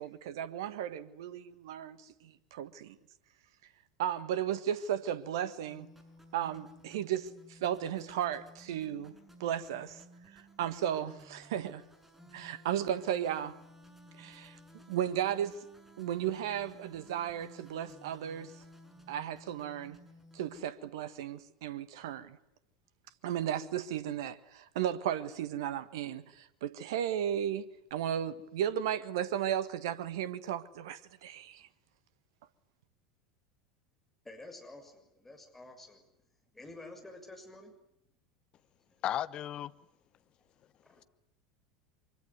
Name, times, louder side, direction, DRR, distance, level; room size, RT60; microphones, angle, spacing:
voice 1, 0.0-3.0 4.0-5.9 6.3-9.1 9.4-10.0 10.3-11.8 12.3-13.6 14.2-15.6 16.0-18.5 19.1-20.0 20.3-22.4 23.2-31.7, right 10 dB, 65° right, 1.6 m, -35 dB
sound 1, 5.7-20.7, equal, 10° right, 6.5 m, -56 dB
voice 2, 34.2-36.0 36.5-37.8 40.8-40.9, left 2 dB, 10° left, 6.6 m, -50 dB
voice 3, 39.0-39.7, left 11 dB, 40° left, 1.0 m, -34 dB
25.0 x 23.5 x 9.6 m
figure-of-eight pair, 75°, 2 cm